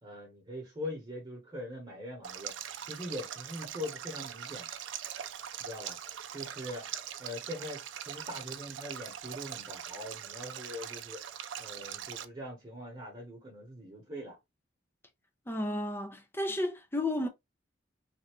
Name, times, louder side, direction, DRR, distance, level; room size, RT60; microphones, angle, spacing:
voice 1, 0.0-2.5 2.8-4.7 5.6-6.0 6.3-6.9 7.2-11.2 11.6-14.4, left 1 dB, 25° right, 1.1 m, -42 dB
Stream, 2.2-12.3, right 10 dB, 80° right, 0.4 m, -42 dB
voice 2, 15.5-17.3, left 1 dB, 10° left, 0.5 m, -32 dB
3.3 x 2.7 x 2.9 m
head